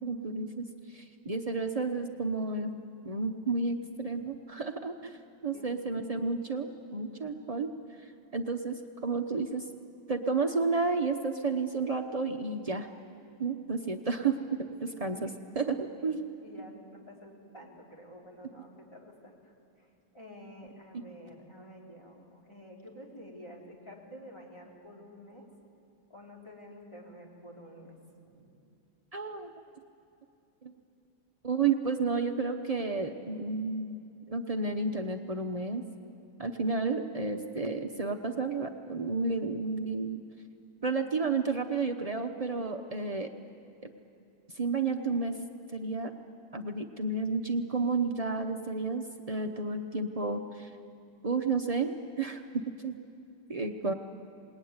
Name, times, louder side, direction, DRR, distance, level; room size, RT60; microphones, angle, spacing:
voice 1, 0.0-7.7 8.0-9.6 10.1-12.9 13.4-15.3 15.6-16.3 29.1-29.5 30.6-30.7 31.4-34.0 34.3-35.8 36.4-40.2 40.8-43.3 43.8-43.9 44.5-45.4 45.7-46.1 46.5-50.7 51.2-53.0 53.5-53.9, right 4 dB, 80° right, 5 dB, 0.3 m, -31 dB
voice 2, 14.8-15.3 16.4-19.9 20.1-25.5 26.1-28.0 28.2-28.6 53.6-54.0, equal, 15° left, -2 dB, 3.5 m, -50 dB
26.5 x 20.0 x 9.6 m, 2.6 s
omnidirectional pair, 2.3 m